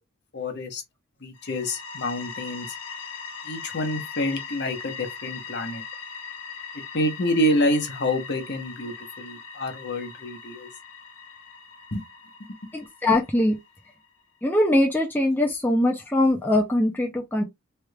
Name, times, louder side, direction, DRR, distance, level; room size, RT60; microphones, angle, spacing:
voice 1, 0.3-0.8 1.2-2.7 3.4-5.8 6.9-10.7 11.9-12.0, left 1 dB, 50° left, 0.9 m, -27 dB
sound 1, 1.3-14.1, left 5 dB, 65° left, 1.2 m, -40 dB
voice 2, 12.7-13.6 14.4-17.4, left 1 dB, 10° left, 0.5 m, -22 dB
3.3 x 3.2 x 2.3 m
head